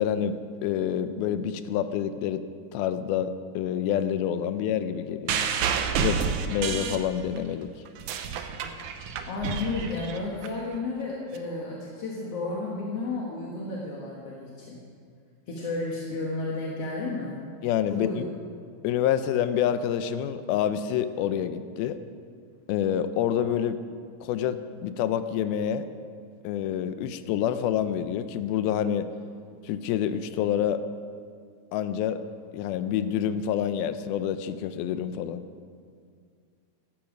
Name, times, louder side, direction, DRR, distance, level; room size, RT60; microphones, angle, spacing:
voice 1, 0.0-2.4 2.7-5.4 5.9-7.7 17.6-18.1 18.8-22.0 22.7-23.8 24.2-25.9 26.4-29.1 29.6-30.8 31.7-32.2 32.5-35.4, left 9 dB, 80° left, 11 dB, 2.4 m, -27 dB
sound 1, 5.3-7.5 7.9-10.5 11.3-11.4, right 7 dB, 75° right, 1.8 m, -29 dB
voice 2, 9.3-14.8 15.5-17.4 17.9-18.2, left 3 dB, 50° left, -4 dB, 2.0 m, -32 dB
16.0 x 13.0 x 5.2 m, 2.2 s
omnidirectional pair, 4.5 m